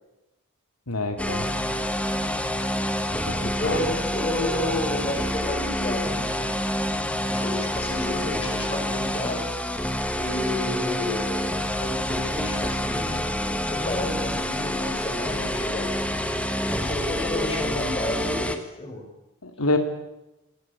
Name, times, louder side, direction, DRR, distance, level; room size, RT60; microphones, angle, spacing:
voice 1, 0.9-1.5 3.3-3.9 19.4-19.8, left 2 dB, 85° left, 6 dB, 2.5 m, -27 dB
sound 1, 1.2-18.6, left 1 dB, 5° left, 1.7 m, -27 dB
voice 2, 3.6-6.9 7.2-9.5 10.2-13.2 13.6-15.9 16.6-19.1, left 1 dB, 25° left, 4 dB, 5.5 m, -31 dB
25.5 x 18.5 x 8.4 m, 0.93 s
head